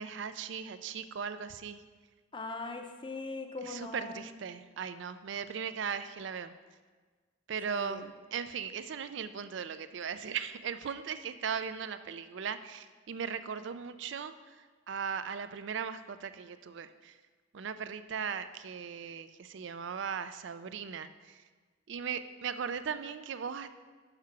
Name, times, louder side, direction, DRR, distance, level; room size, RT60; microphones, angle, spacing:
voice 1, 0.0-1.8 3.7-6.5 7.5-14.3 14.9-17.1 17.5-21.4 21.9-23.7, right 7 dB, 70° right, 12 dB, 0.4 m, -38 dB
voice 2, 2.3-4.2 7.7-8.1, left 3 dB, 25° left, 5 dB, 0.6 m, -41 dB
6.6 x 5.8 x 5.8 m, 1.4 s
head